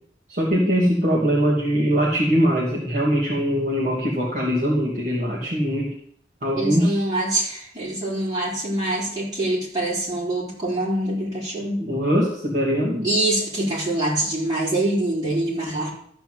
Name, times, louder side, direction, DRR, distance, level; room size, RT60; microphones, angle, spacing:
voice 1, 0.3-5.9 6.4-7.1 11.8-13.1, equal, 45° right, -6 dB, 2.5 m, -22 dB
voice 2, 6.5-11.8 13.0-15.9, right 1 dB, 25° right, -7 dB, 4.1 m, -24 dB
13.0 x 4.5 x 7.8 m, 0.67 s
head